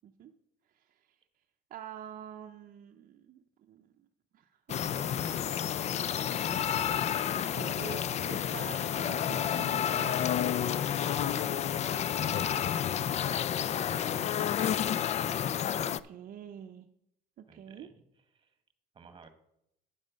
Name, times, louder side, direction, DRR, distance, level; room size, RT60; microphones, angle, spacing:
voice 1, 0.7-1.2 1.7-3.9 4.3-5.5 6.3-10.5 15.8-16.9 17.4-17.9, right 9 dB, 55° right, 5 dB, 0.6 m, -47 dB
sound 1, 4.7-16.0, left 9 dB, 40° left, 0.4 m, -30 dB
voice 2, 11.9-14.2 17.5-18.0 18.3-18.6 18.9-19.3, right 4 dB, 30° right, 9 dB, 1.3 m, -54 dB
9.7 x 7.4 x 5.1 m, 0.78 s
cardioid pair, 110°, 17 cm